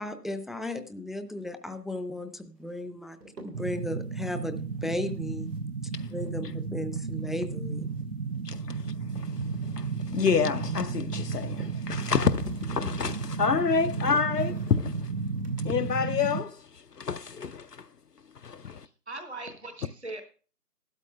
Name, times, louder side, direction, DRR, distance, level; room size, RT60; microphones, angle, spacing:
voice 1, 0.0-3.2 3.4-4.6 4.8-5.5 6.1-7.9, left 1 dB, ahead, 0.5 m, -35 dB
sound 1, 2.6-3.9 5.0-7.3 7.6-9.5 9.7-10.6 11.1-17.2, right 1 dB, 80° right, 2.2 m, -55 dB
sound 2, 3.5-16.4, right 5 dB, 65° right, 0.6 m, -33 dB
voice 2, 8.4-15.1 15.6-17.9 18.4-18.9, left 6 dB, 75° left, 0.5 m, -29 dB
voice 3, 18.7-20.2, right 2 dB, 45° right, 0.9 m, -40 dB
14.5 x 12.5 x 2.3 m
figure-of-eight pair, 170°, 48 cm